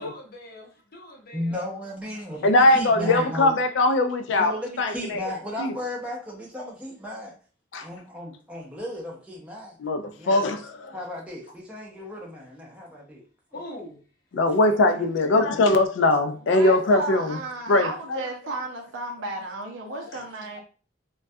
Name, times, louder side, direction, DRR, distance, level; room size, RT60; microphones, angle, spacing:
voice 1, 0.0-1.6 11.9-12.0 13.5-14.0, left 1 dB, 50° left, 0.7 m, -42 dB
voice 2, 1.3-3.5 4.4-7.3 7.8-9.8 10.2-10.3 10.9-13.2 14.6-14.7 15.3-15.8, left 1 dB, 5° right, 0.5 m, -35 dB
voice 3, 2.4-5.7 7.7-7.9 9.8-11.0 14.3-17.4 17.7-18.2, left 2 dB, 75° left, 0.4 m, -21 dB
voice 4, 16.5-20.6, right 2 dB, 90° right, 0.5 m, -33 dB
2.2 x 2.1 x 2.6 m
head